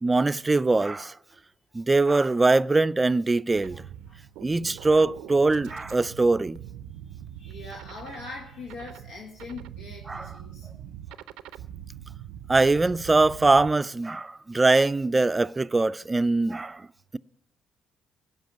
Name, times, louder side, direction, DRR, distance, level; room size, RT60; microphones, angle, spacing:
voice 1, 0.0-1.1 1.7-3.8 4.4-6.6 10.1-10.3 12.5-16.9, right 3 dB, 25° right, 0.4 m, -22 dB
sound 1, 3.5-13.7, right 11 dB, 80° right, 0.5 m, -43 dB
voice 2, 7.3-10.7 16.6-16.7, left 3 dB, 85° left, 1.8 m, -42 dB
16.5 x 5.8 x 9.1 m
hypercardioid pair, 55°, 0 cm